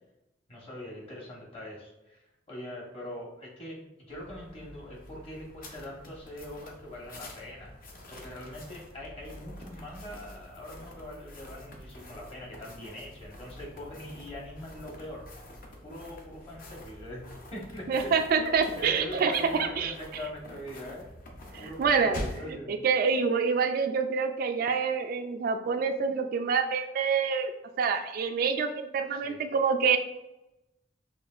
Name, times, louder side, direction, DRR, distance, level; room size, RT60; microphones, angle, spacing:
voice 1, 0.5-7.7 8.1-15.2 15.8-17.2 17.5-18.1 18.4-21.1 21.6-22.7 29.1-29.4, left 1 dB, 35° left, -3 dB, 1.1 m, -42 dB
sound 1, 4.1-22.5, left 1 dB, 55° left, 0.7 m, -46 dB
voice 2, 17.9-19.9 21.5-22.2 22.7-27.5 27.8-30.0, right 5 dB, 55° right, 7 dB, 0.3 m, -26 dB
5.8 x 2.5 x 2.4 m, 0.94 s
head